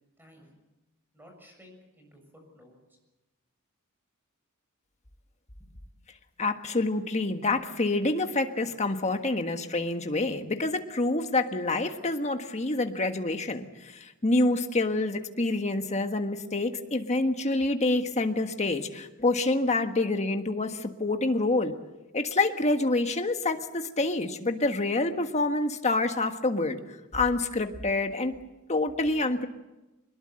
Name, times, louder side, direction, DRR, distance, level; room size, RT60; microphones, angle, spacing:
voice 1, 0.2-0.5 1.1-2.8 5.6-5.9, left 1 dB, 10° right, 3 dB, 6.9 m, -55 dB
voice 2, 6.4-21.7 22.1-26.8 27.1-28.3 28.7-29.5, left 2 dB, 30° left, 6 dB, 1.5 m, -27 dB
22.5 x 21.0 x 7.8 m, 1.0 s
head